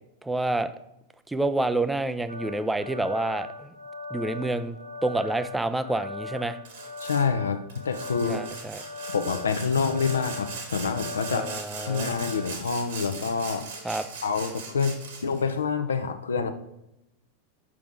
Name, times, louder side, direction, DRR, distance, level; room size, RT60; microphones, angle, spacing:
voice 1, 0.2-0.7 1.3-3.7 4.1-6.6 8.3-8.8 11.3-12.2 13.8-14.0, right 2 dB, 5° right, 11 dB, 0.4 m, -28 dB
sound 1, 2.3-12.5, left 3 dB, 90° right, 0.8 m, -39 dB
Sawing, 6.6-7.3 7.7-15.4, right 5 dB, 60° right, 1.6 m, -40 dB
voice 2, 7.0-8.4 9.1-11.5 11.8-13.6 13.9-16.5, left 5 dB, 70° left, 8 dB, 0.6 m, -27 dB
6.0 x 5.9 x 3.5 m, 0.85 s
figure-of-eight pair, 90°, 0 cm